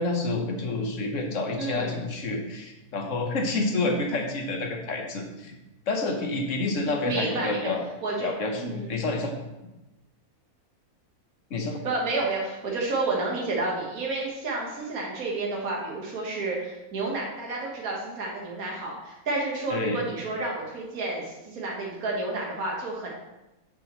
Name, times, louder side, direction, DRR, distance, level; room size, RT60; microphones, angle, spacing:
voice 1, 0.0-5.5 5.9-7.9 8.2-9.3 11.5-11.8 19.7-20.0, left 2 dB, 60° left, 3 dB, 1.5 m, -28 dB
voice 2, 1.6-2.0 7.0-7.7 8.0-8.3 8.6-9.0 11.8-23.1, right 3 dB, 70° right, -2 dB, 1.9 m, -30 dB
9.8 x 6.7 x 3.1 m, 0.99 s
omnidirectional pair, 1.6 m